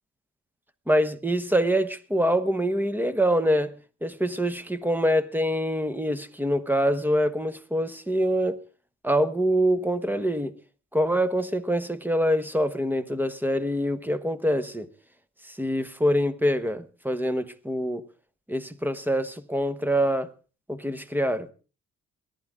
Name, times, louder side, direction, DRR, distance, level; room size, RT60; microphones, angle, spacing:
voice 1, 0.9-3.7 4.0-8.6 9.0-10.5 10.9-14.9 15.4-18.0 18.5-20.3 20.7-21.5, equal, 5° right, 1.1 m, -25 dB
22.5 x 10.5 x 3.7 m
cardioid pair, 90°, 30 cm